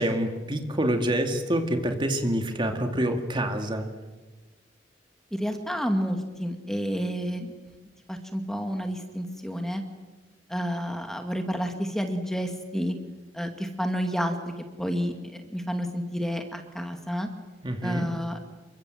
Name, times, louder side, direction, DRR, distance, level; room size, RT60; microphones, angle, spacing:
voice 1, 0.0-3.9 17.6-18.1, right 1 dB, 25° right, 5 dB, 2.3 m, -26 dB
voice 2, 5.3-7.5 8.1-9.8 10.5-13.0 13.3-14.4 14.8-15.1 15.5-17.3 17.8-18.4, equal, 5° left, 5 dB, 2.3 m, -30 dB
29.0 x 24.0 x 7.9 m, 1.2 s
head